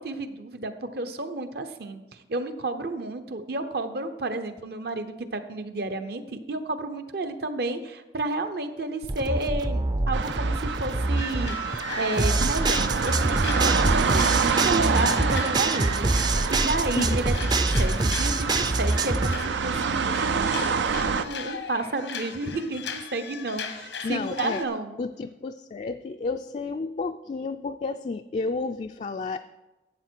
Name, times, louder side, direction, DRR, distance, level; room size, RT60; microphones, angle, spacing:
voice 1, 0.0-25.0, right 2 dB, 60° right, 9 dB, 0.8 m, -31 dB
sound 1, 9.0-19.4, right 2 dB, 25° right, 0.4 m, -25 dB
sound 2, 10.1-21.2, right 5 dB, 90° right, 0.5 m, -28 dB
sound 3, 11.2-24.7, left 5 dB, 85° left, 1.0 m, -38 dB
voice 2, 24.0-24.6 25.0-29.4, left 4 dB, 40° left, 6 dB, 0.3 m, -31 dB
12.0 x 8.1 x 4.5 m, 1.1 s
head